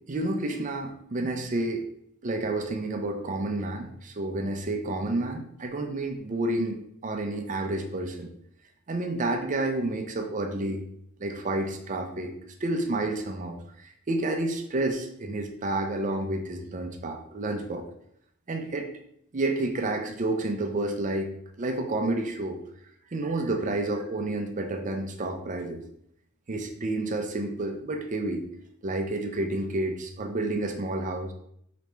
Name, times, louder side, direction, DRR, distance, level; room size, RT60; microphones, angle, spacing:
voice 1, 0.0-1.8 2.2-8.3 8.9-10.8 11.2-12.3 12.6-17.8 18.5-18.9 19.3-21.3 21.6-22.6 23.1-25.8 26.5-28.4 28.8-31.3, right 2 dB, 35° right, 4 dB, 0.5 m, -30 dB
5.1 x 3.3 x 3.1 m, 0.70 s
head